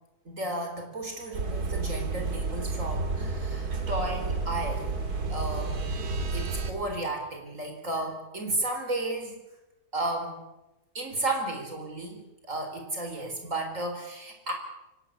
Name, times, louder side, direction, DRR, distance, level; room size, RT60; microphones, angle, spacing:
voice 1, 0.3-5.0 5.3-5.8 6.3-9.4 9.9-10.4 10.9-14.5, right 2 dB, 55° right, 3 dB, 4.4 m, -33 dB
sound 1, 1.0-7.0, left 2 dB, 75° left, 3.7 m, -45 dB
sound 2, 1.3-6.7, right 4 dB, 85° right, 2.8 m, -31 dB
26.0 x 16.5 x 8.6 m, 0.98 s
omnidirectional pair, 1.6 m